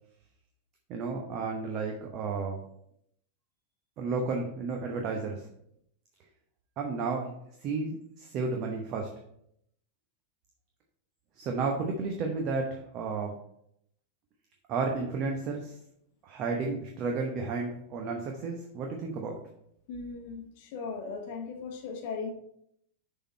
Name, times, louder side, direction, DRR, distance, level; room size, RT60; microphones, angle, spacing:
voice 1, 0.9-2.6 4.0-5.5 6.8-7.3 7.6-9.1 11.4-13.4 14.7-15.8 16.2-19.4, right 4 dB, 35° right, 2 dB, 0.8 m, -32 dB
voice 2, 19.9-22.3, left 5 dB, 50° left, 4 dB, 0.9 m, -38 dB
6.8 x 3.8 x 4.2 m, 0.73 s
figure-of-eight pair, 90°, 0 cm